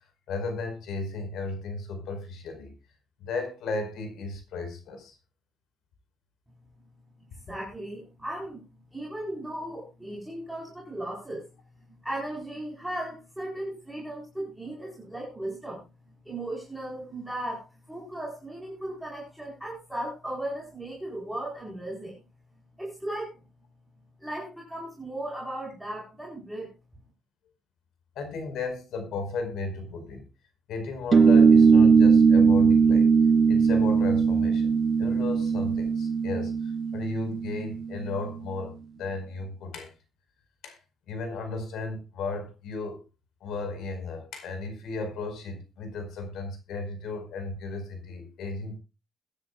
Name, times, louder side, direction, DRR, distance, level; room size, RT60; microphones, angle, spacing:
voice 1, 0.3-2.7 3.2-5.1 28.1-30.2 30.7-33.1 33.5-36.5 36.9-39.9 40.6-40.8 41.1-43.0 43.4-48.8, left 3 dB, 80° left, 7 dB, 4.9 m, -34 dB
voice 2, 7.4-8.6 8.9-11.5 12.0-15.8 16.2-22.2 22.8-23.4 24.2-26.7, right 1 dB, 5° right, -3 dB, 4.4 m, -36 dB
sound 1, 31.1-38.1, right 5 dB, 35° right, 0.7 m, -20 dB
22.0 x 10.5 x 2.4 m, 0.27 s
cardioid pair, 145°, 0 cm